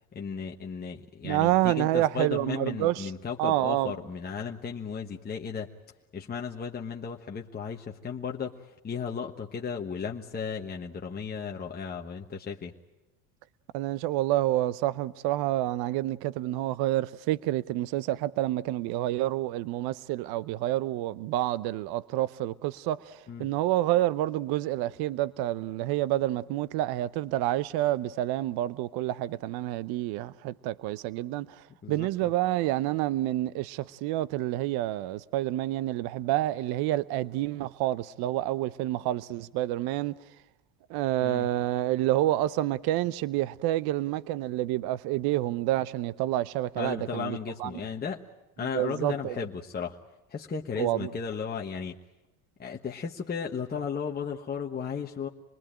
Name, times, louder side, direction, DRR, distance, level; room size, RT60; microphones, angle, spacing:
voice 1, 0.1-5.7 6.1-12.7 23.3-23.5 31.8-32.3 41.2-41.5 46.8-48.2 48.6-50.0 50.3-52.0 52.6-55.3, left 6 dB, 20° left, 1.3 m, -35 dB
voice 2, 1.2-3.1 3.4-3.9 13.7-31.5 31.9-40.1 40.9-47.7 48.7-49.3 50.8-51.1, right 15 dB, 60° right, 0.8 m, -28 dB
26.5 x 20.0 x 8.9 m
supercardioid pair, 95°, 43 cm